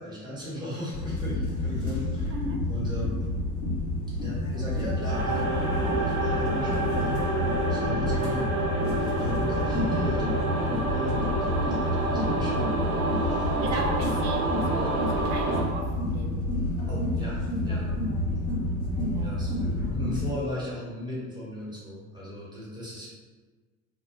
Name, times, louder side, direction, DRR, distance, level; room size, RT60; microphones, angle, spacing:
voice 1, 0.0-2.4 2.7-3.2 4.2-12.7 13.1-13.5 14.1-14.2 16.9-17.9 19.0-23.1, equal, 10° right, -7 dB, 1.0 m, -37 dB
sound 1, 0.9-20.3, left 1 dB, 45° left, 0.9 m, -29 dB
sound 2, 4.5-18.6, left 4 dB, 25° left, 0.5 m, -41 dB
sound 3, 5.1-15.6, right 2 dB, 85° right, 0.6 m, -29 dB
voice 2, 13.6-14.4 14.7-16.4 19.1-19.3, right 3 dB, 40° right, 1 dB, 0.6 m, -36 dB
2.2 x 2.1 x 3.2 m, 1.4 s
figure-of-eight pair, 70°, 42 cm